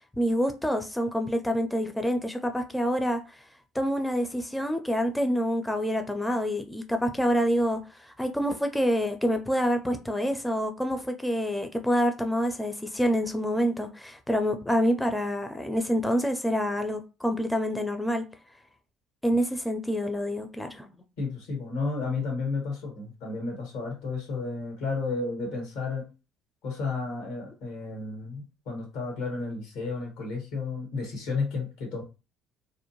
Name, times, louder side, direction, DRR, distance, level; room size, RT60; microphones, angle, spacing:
voice 1, 0.2-3.4 3.7-18.3 19.2-20.9, equal, 5° left, 0.5 m, -27 dB
voice 2, 21.2-26.0 26.6-32.0, left 4 dB, 75° left, 1.5 m, -32 dB
2.5 x 2.1 x 3.0 m
hypercardioid pair, 60°, 0 cm